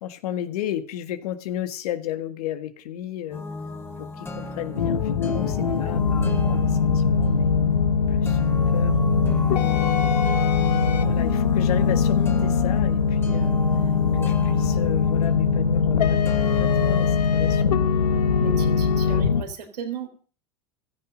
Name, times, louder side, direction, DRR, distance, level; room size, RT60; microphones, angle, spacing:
voice 1, 0.0-3.4 4.0-7.5 8.1-9.4 9.7-10.2 10.9-13.5 14.1-17.7, left 11 dB, 70° left, 9 dB, 1.8 m, -34 dB
sound 1, 3.3-17.2, left 2 dB, 10° left, 2.7 m, -34 dB
sound 2, 4.8-19.4, left 5 dB, 85° left, 1.6 m, -21 dB
voice 2, 18.4-20.1, right 7 dB, 80° right, 5 dB, 3.7 m, -35 dB
15.5 x 13.5 x 5.2 m, 0.39 s
hypercardioid pair, 95°, 20 cm